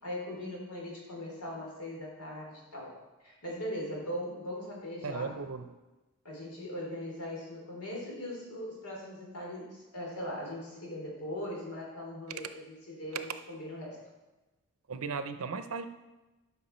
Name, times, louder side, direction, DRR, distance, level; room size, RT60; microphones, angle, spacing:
voice 1, 0.0-3.0 3.2-5.3 6.2-14.0, left 1 dB, 85° left, -2 dB, 3.1 m, -40 dB
voice 2, 5.0-5.7 14.9-15.9, right 5 dB, 70° right, 10 dB, 0.6 m, -36 dB
12.0 x 5.7 x 4.4 m, 1.1 s
head